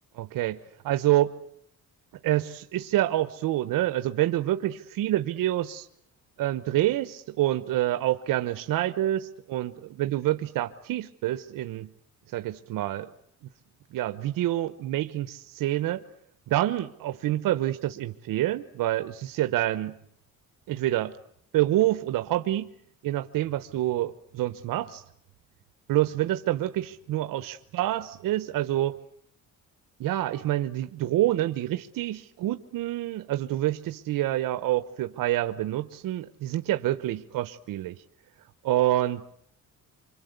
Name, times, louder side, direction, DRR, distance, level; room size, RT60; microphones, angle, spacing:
voice 1, 0.1-1.4 2.2-5.9 6.4-11.9 12.3-13.1 13.9-16.0 16.5-20.0 20.7-21.2 21.5-22.7 23.0-25.0 25.9-29.0 30.0-38.0 38.6-39.2, right 14 dB, 85° right, 11 dB, 1.0 m, -27 dB
26.0 x 25.0 x 8.1 m, 0.69 s
cardioid pair, 125°, 32 cm